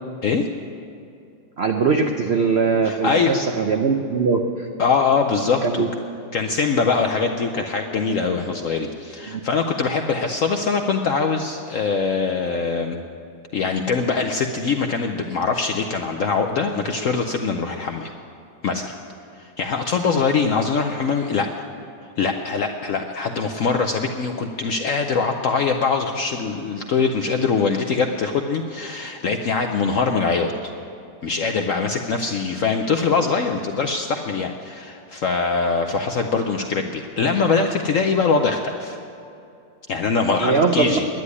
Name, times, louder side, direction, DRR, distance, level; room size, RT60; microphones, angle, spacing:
voice 1, 1.6-4.7 5.6-5.9 9.3-9.4 40.4-41.0, right 4 dB, 75° right, 4 dB, 0.5 m, -21 dB
voice 2, 2.8-3.4 4.8-5.8 6.3-13.0 13.5-18.1 18.6-18.9 19.4-21.7 22.2-30.7 31.2-39.0 39.9-41.0, left 4 dB, 70° left, 4 dB, 0.7 m, -22 dB
10.5 x 9.8 x 9.7 m, 2.5 s
omnidirectional pair, 2.1 m